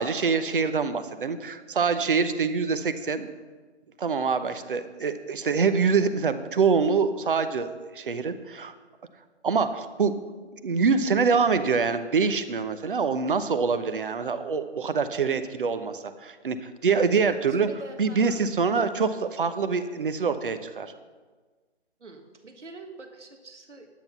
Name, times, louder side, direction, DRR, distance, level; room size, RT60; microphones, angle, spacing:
voice 1, 0.0-3.3 4.0-8.7 9.4-10.1 10.6-17.7 18.0-20.9, right 5 dB, 50° right, 10 dB, 0.9 m, -25 dB
voice 2, 17.5-18.5 22.0-23.9, right 2 dB, 80° right, 5 dB, 1.6 m, -45 dB
10.5 x 9.1 x 5.8 m, 1.4 s
figure-of-eight pair, 160°, 35 cm